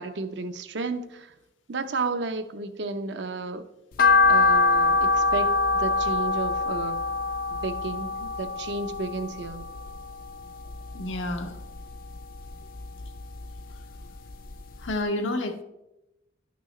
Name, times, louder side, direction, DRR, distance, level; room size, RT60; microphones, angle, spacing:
voice 1, 0.0-1.3 1.7-3.6 4.3-7.0 7.5-9.7, right 3 dB, 70° right, 8 dB, 0.6 m, -32 dB
sound 1, 4.0-10.3 10.7-11.8 12.2-13.6 13.9-14.0 14.5-14.6 14.9-15.0, left 3 dB, 50° left, 0.4 m, -24 dB
voice 2, 10.9-11.6 14.8-15.6, left 1 dB, 85° left, 5 dB, 0.9 m, -29 dB
11.5 x 6.1 x 3.1 m, 0.93 s
head